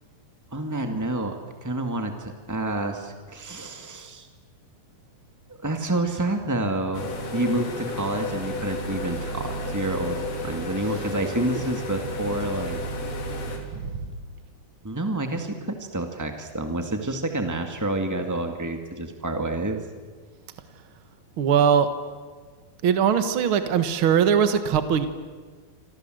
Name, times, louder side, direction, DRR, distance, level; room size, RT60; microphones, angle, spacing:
voice 1, 0.5-4.3 5.6-12.8 14.8-19.8, right 2 dB, 15° right, 5 dB, 0.6 m, -28 dB
sound 1, 6.9-13.6, left 1 dB, 70° left, 5.7 m, -32 dB
voice 2, 21.4-21.9 22.8-25.1, right 7 dB, 65° right, 9 dB, 1.2 m, -21 dB
28.5 x 26.0 x 7.8 m, 1.5 s
omnidirectional pair, 4.6 m